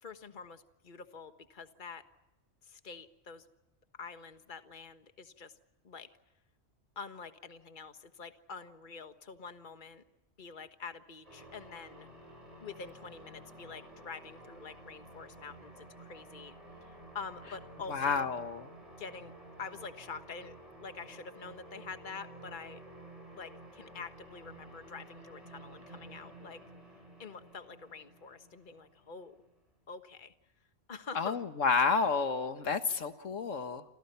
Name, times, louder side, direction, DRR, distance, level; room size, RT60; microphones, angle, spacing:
voice 1, 0.0-2.0 2.6-3.5 3.9-5.5 5.8-6.1 6.9-10.0 10.4-12.1 12.6-16.5 16.8-18.4 19.0-19.3 19.6-22.8 23.3-26.6 27.2-29.3 29.9-30.3 30.9-31.5, left 5 dB, 40° left, 9 dB, 1.6 m, -46 dB
sound 1, 11.2-29.6, right 1 dB, 30° right, 7.5 m, -52 dB
voice 2, 17.9-18.6 31.2-33.8, left 5 dB, 85° left, 9 dB, 1.8 m, -30 dB
29.0 x 27.0 x 5.7 m, 0.95 s
omnidirectional pair, 1.3 m